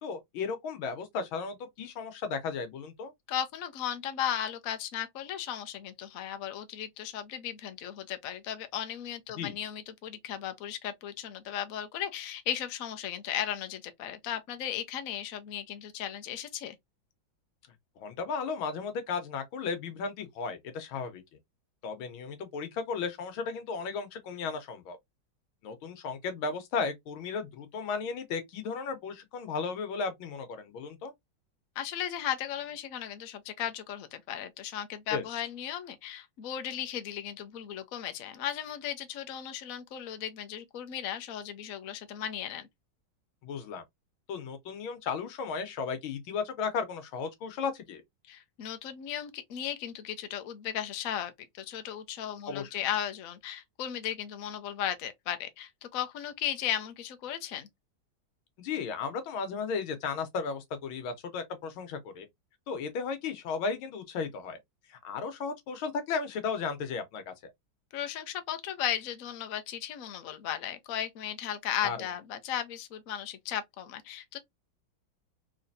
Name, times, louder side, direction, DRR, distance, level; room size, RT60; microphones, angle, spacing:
voice 1, 0.0-3.1 9.4-9.6 18.0-21.2 21.8-25.0 25.6-31.1 35.1-35.2 43.4-43.8 44.3-48.0 52.5-52.7 58.6-62.3 62.7-64.6 64.9-67.3 71.8-72.1, left 5 dB, 80° left, 1.7 m, -35 dB
voice 2, 3.3-16.7 31.8-42.7 48.3-57.7 67.9-74.4, left 10 dB, 60° left, 0.9 m, -36 dB
3.8 x 3.2 x 2.6 m
omnidirectional pair, 2.2 m